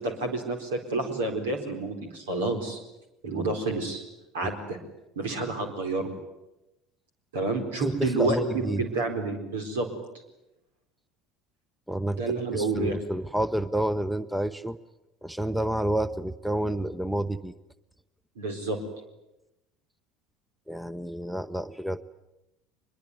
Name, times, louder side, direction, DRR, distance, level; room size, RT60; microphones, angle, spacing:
voice 1, 0.0-2.8 3.2-4.0 4.3-4.8 5.2-6.1 7.3-9.9 12.1-13.0 18.4-18.8, right 3 dB, 75° right, 5 dB, 4.3 m, -29 dB
voice 2, 7.8-8.8 11.9-12.2 12.5-14.8 15.2-17.5 20.7-22.0, right 1 dB, ahead, 15 dB, 0.9 m, -29 dB
24.0 x 22.0 x 9.4 m, 0.93 s
figure-of-eight pair, 65°, 0 cm